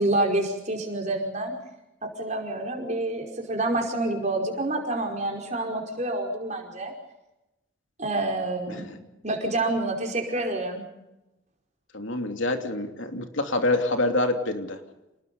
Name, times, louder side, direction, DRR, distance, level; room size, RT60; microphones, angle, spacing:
voice 1, 0.0-1.5 2.0-6.9 8.0-8.9 9.2-10.8, right 2 dB, 35° right, 1 dB, 5.0 m, -28 dB
voice 2, 11.9-14.8, left 2 dB, 70° left, 5 dB, 2.9 m, -26 dB
29.0 x 20.0 x 5.5 m, 0.94 s
head